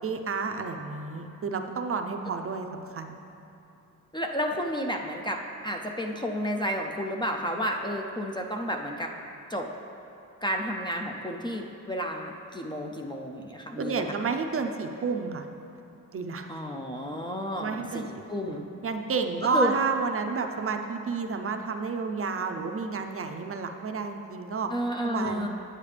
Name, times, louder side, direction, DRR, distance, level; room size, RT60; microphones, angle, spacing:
voice 1, 0.0-3.2 13.8-15.5 16.1-16.5 17.6-18.5 18.8-24.7 25.0-25.5, right 4 dB, 45° right, 5 dB, 0.5 m, -31 dB
voice 2, 4.1-9.1 9.5-9.7 10.4-14.2 16.5-18.6 19.4-19.7 24.7-25.5, equal, 15° left, 1 dB, 0.4 m, -31 dB
8.8 x 8.6 x 3.3 m, 2.9 s
wide cardioid pair, 150°, 32 cm